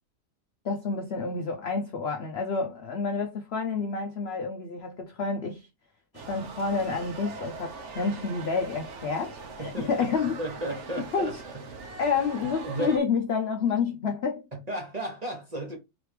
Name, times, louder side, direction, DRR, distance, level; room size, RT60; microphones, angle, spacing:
voice 1, 0.6-5.7 6.1-10.4 11.1-11.4 12.0-14.5, left 5 dB, 65° left, 0.6 m, -29 dB
sound 1, 6.1-13.0, right 4 dB, 50° right, 1.1 m, -42 dB
voice 2, 9.6-10.1 10.4-11.5 11.8-12.0 12.6-13.0 14.7-15.8, right 1 dB, 30° right, 0.9 m, -34 dB
4.0 x 3.3 x 3.2 m
omnidirectional pair, 1.7 m